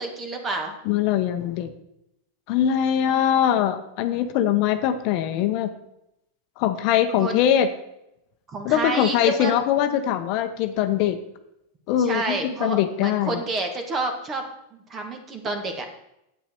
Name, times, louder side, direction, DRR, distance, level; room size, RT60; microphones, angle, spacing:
voice 1, 0.0-0.7 3.1-3.3 7.2-7.4 8.5-9.5 12.0-14.4 14.7-15.8, right 3 dB, 25° right, 5 dB, 1.8 m, -29 dB
voice 2, 0.8-1.7 2.5-5.7 6.6-7.7 8.6-11.2 11.9-13.4, left 10 dB, 50° left, 8 dB, 0.9 m, -22 dB
9.1 x 8.3 x 4.5 m, 0.83 s
supercardioid pair, 130°, 0 cm